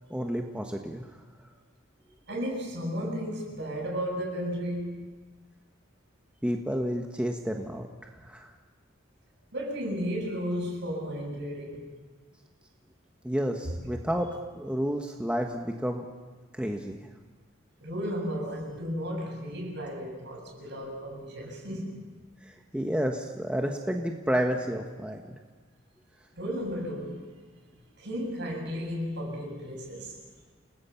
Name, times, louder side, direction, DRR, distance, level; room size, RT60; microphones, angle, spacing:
voice 1, 0.1-1.2 6.4-7.9 8.2-8.5 13.2-14.3 14.5-16.0 16.5-17.0 22.4-25.4, equal, 5° right, 2 dB, 1.4 m, -30 dB
voice 2, 2.3-5.0 9.5-11.9 13.7-13.8 16.6-16.8 17.8-22.0 26.4-27.2 28.0-30.2, equal, 60° right, 0 dB, 7.8 m, -34 dB
29.5 x 20.0 x 5.9 m, 1.5 s
head